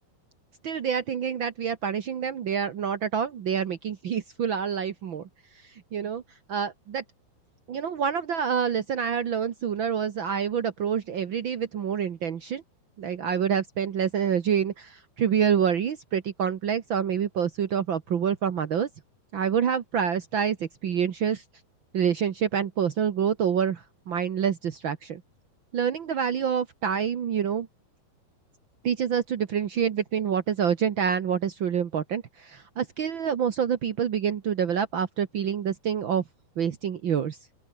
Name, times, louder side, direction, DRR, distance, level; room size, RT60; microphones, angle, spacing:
voice 1, 0.6-5.3 5.6-6.2 6.5-7.0 7.7-12.6 13.0-18.9 19.3-21.4 21.9-25.2 25.7-27.7 28.8-36.2 36.6-37.4, right 8 dB, 80° right, 1.1 m, -27 dB
open air
omnidirectional pair, 4.3 m